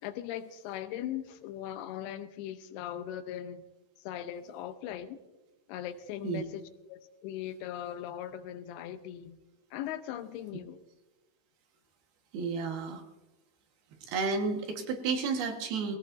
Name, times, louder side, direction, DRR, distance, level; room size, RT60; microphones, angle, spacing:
voice 1, 0.0-3.6 4.0-5.2 5.7-9.4 9.7-10.8, left 11 dB, 85° left, 10 dB, 2.8 m, -39 dB
voice 2, 12.3-13.0 14.1-16.0, right 4 dB, 75° right, 3 dB, 3.3 m, -31 dB
21.0 x 16.5 x 2.6 m, 1.1 s
omnidirectional pair, 4.5 m